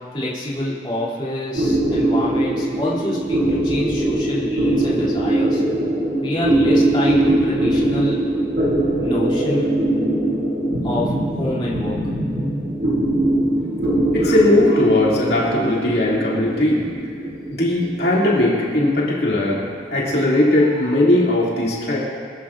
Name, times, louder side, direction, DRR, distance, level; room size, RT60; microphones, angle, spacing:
voice 1, 0.1-5.6 6.2-8.2 9.0-9.7 10.8-12.0, left 1 dB, 25° left, -8 dB, 2.8 m, -26 dB
sound 1, 1.5-20.3, right 1 dB, 80° right, 3.7 m, -21 dB
voice 2, 14.1-16.9 17.5-19.6 19.9-22.0, left 1 dB, 60° left, -6 dB, 2.5 m, -18 dB
23.0 x 14.0 x 2.5 m, 2.2 s
head